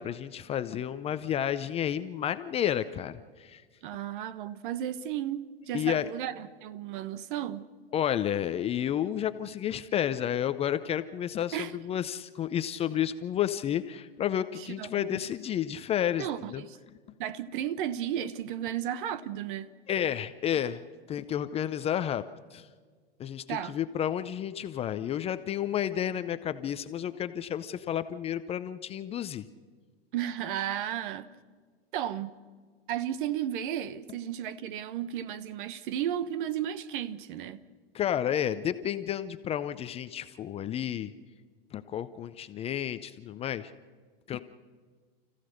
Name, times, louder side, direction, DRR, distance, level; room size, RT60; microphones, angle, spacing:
voice 1, 0.0-3.6 5.7-6.1 7.9-16.6 19.9-22.2 22.5-22.7 23.2-29.5 37.9-41.1 41.7-43.7 44.3-44.4, left 10 dB, 20° left, 0.6 m, -31 dB
voice 2, 3.8-7.6 11.5-11.7 14.8-15.2 16.2-16.8 17.2-19.7 23.5-23.7 30.1-31.3 31.9-32.3 32.9-37.6, right 10 dB, 55° right, 1.2 m, -34 dB
29.5 x 15.0 x 6.5 m
hypercardioid pair, 125°, 31 cm